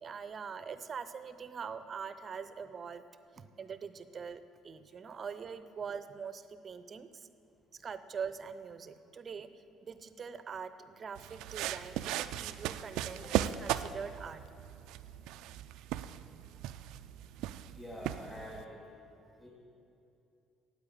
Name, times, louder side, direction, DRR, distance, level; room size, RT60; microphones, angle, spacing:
voice 1, 0.0-3.0 3.4-7.3 7.7-14.4, right 6 dB, 40° right, 12 dB, 0.7 m, -43 dB
sound 1, 11.2-18.6, right 12 dB, 75° right, 0.4 m, -37 dB
voice 2, 17.7-18.8 19.4-19.5, left 1 dB, 15° left, -7 dB, 3.1 m, -46 dB
9.7 x 8.2 x 8.7 m, 2.7 s
supercardioid pair, 80°, 0 cm